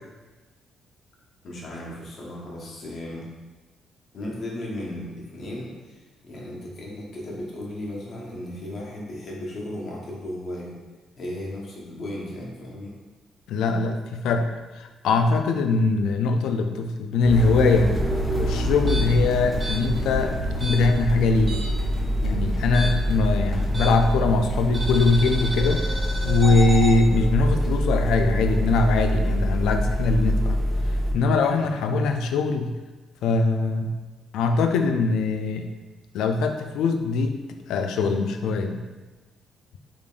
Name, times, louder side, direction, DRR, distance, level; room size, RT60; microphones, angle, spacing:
voice 1, 1.4-3.3 4.1-10.7 11.2-13.0 13.8-13.9 22.7-22.9 26.4-26.6 31.6-31.8, left 1 dB, 55° left, -4 dB, 1.0 m, -36 dB
voice 2, 13.5-14.5 14.8-18.0 18.4-20.4 20.6-21.6 22.2-25.8 26.2-30.6 31.1-32.7 33.2-33.9 34.3-35.7 36.1-37.4 37.7-38.8, left 3 dB, 85° left, 6 dB, 0.3 m, -22 dB
sound 1, 17.2-31.1, equal, 15° left, 1.1 m, -25 dB
sound 2, 18.9-21.9 22.1-24.2 24.7-27.0, right 1 dB, 35° right, 1.3 m, -33 dB
sound 3, 25.5-31.7, right 3 dB, 50° right, 0.4 m, -42 dB
3.6 x 3.5 x 2.4 m, 1.2 s
cardioid pair, 90°, 0 cm